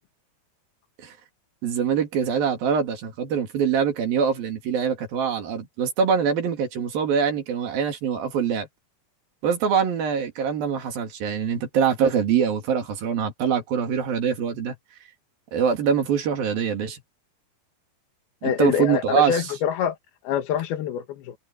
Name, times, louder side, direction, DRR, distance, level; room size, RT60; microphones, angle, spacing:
voice 1, 1.6-8.7 9.4-14.7 15.5-17.0 18.4-19.4, right 7 dB, 70° right, 4.3 m, -24 dB
voice 2, 18.4-20.0 20.2-21.4, left 9 dB, 90° left, 3.4 m, -25 dB
omnidirectional pair, 4.3 m